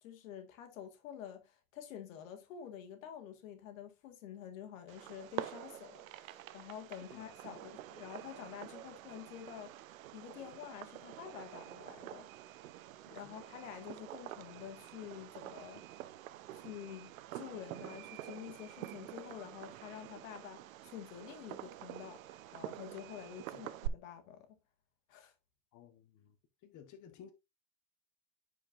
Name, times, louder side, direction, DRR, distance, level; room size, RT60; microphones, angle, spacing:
voice 1, 0.0-12.3 13.1-16.1 16.5-24.5 25.1-25.3, left 9 dB, 80° left, 1.9 m, -49 dB
Fireworks, 4.9-23.9, right 14 dB, 85° right, 0.7 m, -47 dB
voice 2, 25.7-26.4 26.6-27.3, left 8 dB, 50° left, 1.5 m, -55 dB
10.0 x 5.0 x 2.6 m
hypercardioid pair, 95°, 39 cm